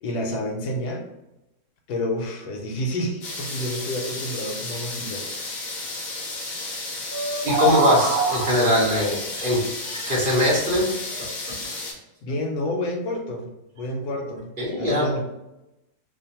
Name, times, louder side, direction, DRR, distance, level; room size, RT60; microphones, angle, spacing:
voice 1, 0.0-1.0 1.9-5.3 12.2-13.5 13.8-14.5 14.8-15.2, left 1 dB, 90° left, 3 dB, 1.1 m, -29 dB
sound 1, 3.2-11.9, left 2 dB, 65° left, 1.1 m, -33 dB
sound 2, 7.1-8.9, right 1 dB, 70° right, 1.2 m, -24 dB
voice 2, 7.4-11.5 14.6-15.1, equal, 50° right, -6 dB, 0.7 m, -22 dB
2.8 x 2.0 x 2.8 m, 0.94 s
omnidirectional pair, 1.6 m